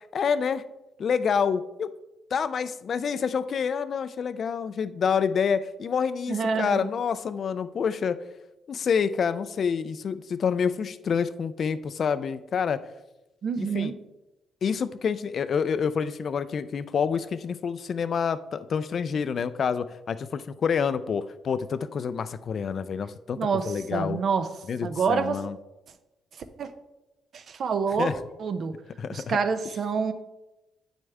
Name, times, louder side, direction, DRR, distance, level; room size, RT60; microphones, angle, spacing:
voice 1, 0.1-0.6 1.0-1.9 2.3-8.2 8.7-12.8 13.6-13.9 14.6-23.4 23.7-24.2 24.7-25.6 28.0-28.1 29.0-29.4, left 6 dB, 55° left, 13 dB, 0.5 m, -27 dB
voice 2, 6.3-6.9 13.4-13.9 23.4-24.5 24.8-25.4 26.6-26.7 27.3-28.1 28.4-28.7 29.1-30.1, right 5 dB, 55° right, 10 dB, 0.8 m, -27 dB
9.1 x 6.3 x 3.5 m, 0.98 s
cardioid pair, 90°, 0 cm